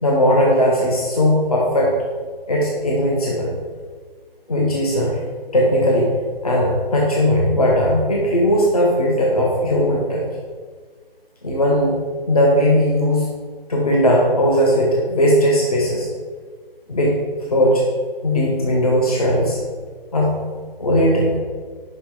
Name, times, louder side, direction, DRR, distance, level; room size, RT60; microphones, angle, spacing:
voice 1, 0.0-1.9 2.5-3.5 4.5-5.2 5.5-6.1 6.4-10.2 11.4-12.0 12.3-13.3 13.7-16.1 16.9-17.2 17.5-17.9 18.2-19.6 20.1-20.4 20.8-21.4, equal, 40° left, -3 dB, 1.0 m, -18 dB
5.7 x 5.3 x 4.6 m, 1.5 s
hypercardioid pair, 175°, 30 cm